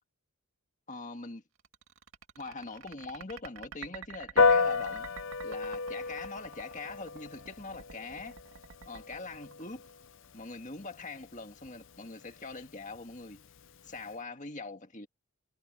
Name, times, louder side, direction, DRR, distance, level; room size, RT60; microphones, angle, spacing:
voice 1, 0.9-1.4 2.4-5.1 5.4-8.4 8.9-9.9 10.3-13.4 13.8-15.1, left 3 dB, 35° left, 1.8 m, -43 dB
sound 1, 1.6-10.3, right 6 dB, 70° right, 1.8 m, -48 dB
Piano, 4.4-14.1, left 4 dB, 55° left, 0.6 m, -33 dB
head